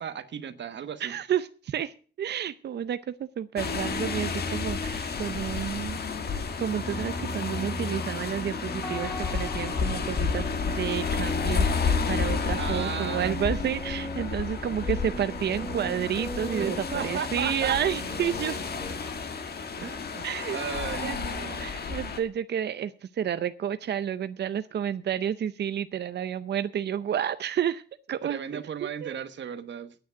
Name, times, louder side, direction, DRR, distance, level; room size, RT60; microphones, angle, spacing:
voice 1, 0.0-1.2 12.6-13.4 16.6-17.8 19.8-20.2 20.5-21.7 28.2-29.9, right 8 dB, 85° right, 11 dB, 1.2 m, -35 dB
voice 2, 1.0-6.0 6.6-18.6 20.2-20.6 21.0-21.2 21.6-27.8 28.1-28.6 29.0-29.1, right 9 dB, 70° right, 12 dB, 0.6 m, -30 dB
sound 1, 3.6-22.2, left 5 dB, 60° left, 1.6 m, -31 dB
sound 2, 6.7-18.9, right 1 dB, 15° left, 3.4 m, -40 dB
9.5 x 9.3 x 7.9 m, 0.40 s
wide cardioid pair, 165°, 18 cm